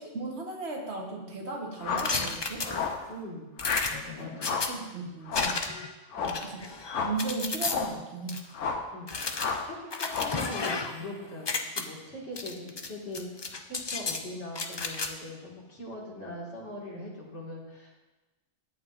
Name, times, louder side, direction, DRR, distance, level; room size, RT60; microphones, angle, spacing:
voice 1, 0.0-2.7 4.2-4.3 4.6-5.7 6.4-6.7 7.0-8.4, right 3 dB, 65° right, 0 dB, 1.4 m, -36 dB
sound 1, 1.8-2.2 2.7-3.1 3.6-4.0 4.4-4.8 5.3-5.6 6.1-6.5 6.9-7.2 7.6-8.0 8.5-8.9 9.4-9.7 10.1-10.5, left 5 dB, 85° left, 1.1 m, -32 dB
sound 2, 2.0-3.1 3.6-4.7 5.3-5.9 6.2-7.7 8.3-8.4 9.1-11.1 11.3-11.8 12.4-12.9 13.1-14.2 14.5-15.1, left 4 dB, 40° left, 0.3 m, -33 dB
voice 2, 3.1-3.5 4.2-4.5 6.1-6.5 8.9-9.1 9.6-17.9, left 1 dB, 70° left, -4 dB, 2.2 m, -41 dB
11.0 x 8.5 x 2.5 m, 1.1 s
omnidirectional pair, 1.2 m